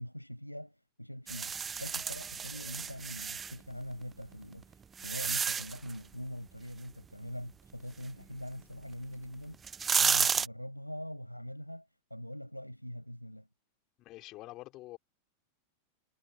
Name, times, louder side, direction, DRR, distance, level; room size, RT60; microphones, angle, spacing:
voice 1, 0.0-9.6 9.9-13.5, equal, 90° left, 6.7 m, -43 dB
sound 1, 1.3-3.5 4.3-5.9 8.9-9.0 9.5-10.5, right 6 dB, 20° right, 0.3 m, -31 dB
voice 2, 14.0-15.0, left 17 dB, 35° left, 4.6 m, -46 dB
figure-of-eight pair, 90°, 0 cm